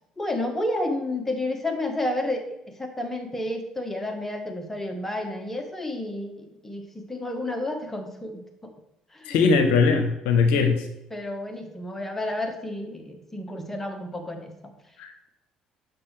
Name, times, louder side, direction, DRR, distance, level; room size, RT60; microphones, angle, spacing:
voice 1, 0.2-8.7 9.1-9.4 10.5-10.8 11.1-14.7, left 1 dB, 15° left, 4 dB, 1.3 m, -31 dB
voice 2, 9.3-10.8 15.0-15.3, left 4 dB, 80° left, 7 dB, 0.7 m, -20 dB
8.2 x 6.1 x 3.3 m, 0.88 s
hypercardioid pair, 65°, 2 cm